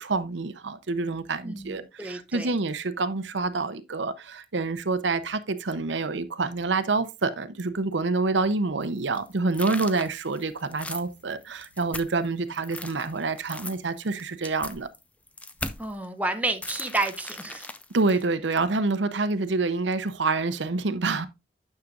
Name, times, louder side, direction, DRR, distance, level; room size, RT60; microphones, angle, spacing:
voice 1, 0.0-14.9 17.9-21.3, right 3 dB, 80° right, 0.8 m, -27 dB
voice 2, 1.4-2.5 15.8-17.7, right 2 dB, 10° right, 0.8 m, -30 dB
sound 1, 8.8-12.3 12.6-16.0 16.6-18.2, left 2 dB, 5° left, 0.4 m, -39 dB
9.7 x 6.7 x 2.5 m
head